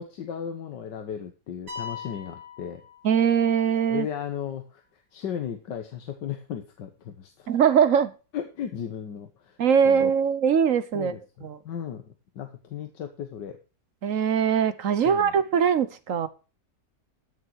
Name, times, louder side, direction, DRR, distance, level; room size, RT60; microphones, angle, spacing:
voice 1, 0.0-2.8 3.9-4.8 5.1-7.5 8.3-9.6 9.9-10.1 10.9-13.6 15.1-15.3, left 8 dB, 90° left, 6 dB, 1.8 m, -35 dB
sound 1, 1.7-3.6, left 6 dB, 75° right, 4.4 m, -40 dB
voice 2, 3.0-4.1 7.5-8.1 9.6-11.1 11.4-11.6 14.0-16.3, right 7 dB, 55° right, 14 dB, 1.1 m, -22 dB
14.0 x 6.5 x 4.5 m, 0.33 s
omnidirectional pair, 1.9 m